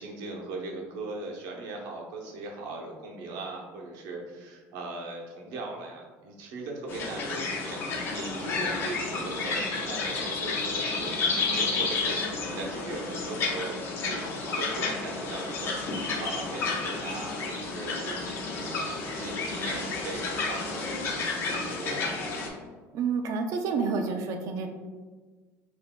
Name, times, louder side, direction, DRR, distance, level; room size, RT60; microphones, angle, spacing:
voice 1, 0.0-14.2 14.5-22.1, right 2 dB, 70° right, 0 dB, 0.8 m, -39 dB
sound 1, 6.9-22.5, left 3 dB, 35° left, 0.8 m, -31 dB
voice 2, 22.9-24.7, right 5 dB, 50° right, 5 dB, 0.5 m, -29 dB
5.9 x 2.6 x 2.2 m, 1.4 s
cardioid pair, 150°, 7 cm